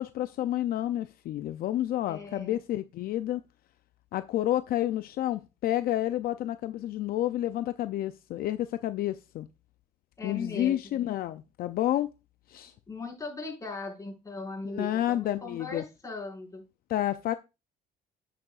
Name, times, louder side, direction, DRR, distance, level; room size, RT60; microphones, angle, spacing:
voice 1, 0.0-3.4 4.1-9.5 10.2-12.1 12.5-12.7 14.7-15.8 16.9-17.3, left 13 dB, 60° left, 0.5 m, -30 dB
voice 2, 2.1-2.6 10.2-10.8 12.9-16.6, left 3 dB, 20° left, 5.2 m, -38 dB
8.8 x 8.4 x 2.4 m
cardioid pair, 110°, 17 cm